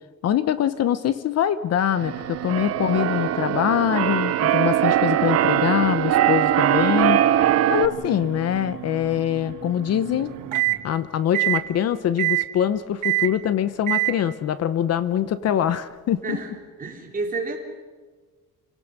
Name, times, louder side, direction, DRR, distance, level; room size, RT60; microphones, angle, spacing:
voice 1, 0.2-7.2 7.7-10.3 10.8-16.4, left 10 dB, 55° left, 14 dB, 0.8 m, -23 dB
Keyboard (musical), 2.0-7.9, right 12 dB, 50° right, 0.8 m, -21 dB
sound 1, 2.0-10.8 11.3-11.7 12.2-12.5 13.0-13.4 13.9-14.2, right 16 dB, 75° right, 1.7 m, -30 dB
voice 2, 16.2-16.5 16.8-17.6, right 3 dB, 25° right, 0 dB, 3.8 m, -29 dB
29.0 x 17.5 x 6.7 m, 1.4 s
cardioid pair, 150°, 31 cm